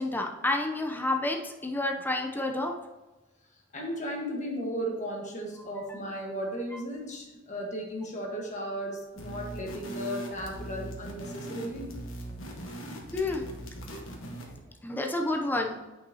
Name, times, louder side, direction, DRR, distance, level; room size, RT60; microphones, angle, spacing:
voice 1, 0.0-2.7 5.7-5.8 13.1-13.4 14.8-15.8, left 2 dB, 10° left, 2 dB, 0.5 m, -29 dB
voice 2, 3.7-11.9, equal, 40° left, 0 dB, 1.4 m, -35 dB
sound 1, 9.2-14.6, right 1 dB, 75° left, 1.3 m, -40 dB
8.7 x 5.5 x 2.8 m, 1.1 s
head